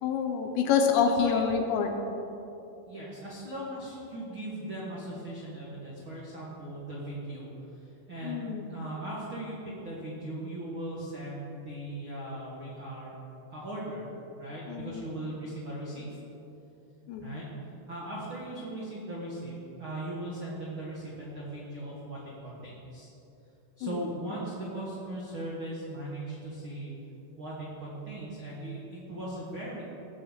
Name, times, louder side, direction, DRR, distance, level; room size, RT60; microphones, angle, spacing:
voice 1, 0.0-1.9 8.2-8.7 14.7-15.0 17.1-17.3 23.8-24.0, left 6 dB, 75° left, 4 dB, 2.9 m, -27 dB
voice 2, 1.0-1.5 2.9-13.1 13.5-14.1 14.4-16.0 17.2-17.5 17.9-23.1 23.8-26.9 27.4-29.8, right 1 dB, 70° right, -6 dB, 1.2 m, -39 dB
16.5 x 6.7 x 5.7 m, 2.9 s
omnidirectional pair, 5.5 m